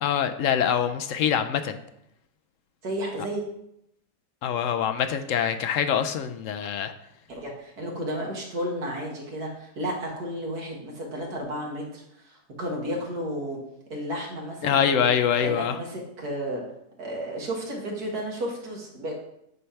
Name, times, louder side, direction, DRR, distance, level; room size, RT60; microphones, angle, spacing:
voice 1, 0.0-1.8 4.4-6.9 14.6-15.8, left 8 dB, 70° left, 8 dB, 0.8 m, -24 dB
voice 2, 2.8-3.4 7.3-13.6 13.9-15.1 15.4-16.6 17.0-19.1, equal, 65° right, -1 dB, 2.2 m, -32 dB
9.4 x 3.3 x 5.7 m, 0.78 s
omnidirectional pair, 1.8 m